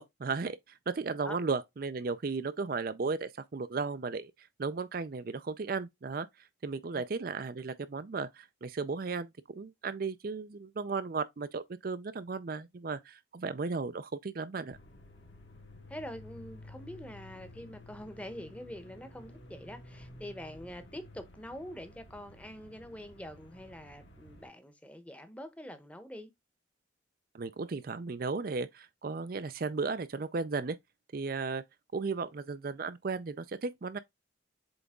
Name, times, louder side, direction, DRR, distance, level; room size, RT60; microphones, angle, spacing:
voice 1, 0.0-6.3 6.6-9.3 9.6-14.8 27.3-30.8 31.1-31.6 31.9-34.0, right 4 dB, 45° right, 0.4 m, -35 dB
sound 1, 14.7-24.5, left 1 dB, 65° left, 2.0 m, -52 dB
voice 2, 15.9-26.3, equal, 5° left, 0.9 m, -45 dB
7.8 x 3.5 x 3.6 m
head